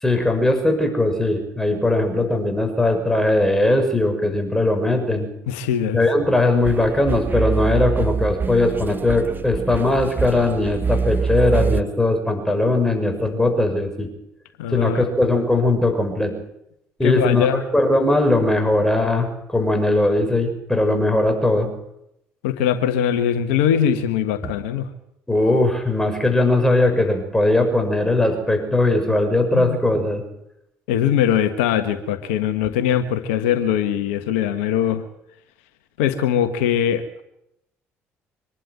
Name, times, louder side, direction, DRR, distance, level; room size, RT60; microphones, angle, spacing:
voice 1, 0.0-5.3 5.9-14.1 14.7-16.3 17.0-21.7 24.4-24.5 25.3-30.2, left 2 dB, 5° left, 4 dB, 6.1 m, -19 dB
voice 2, 5.5-6.0 14.6-15.0 17.0-17.6 22.4-24.9 29.5-29.8 30.9-35.0 36.0-37.2, left 9 dB, 80° left, 8 dB, 1.4 m, -21 dB
sound 1, 6.6-11.8, right 5 dB, 30° right, 1.0 m, -25 dB
25.0 x 11.5 x 9.6 m, 0.82 s
hypercardioid pair, 55°, 7 cm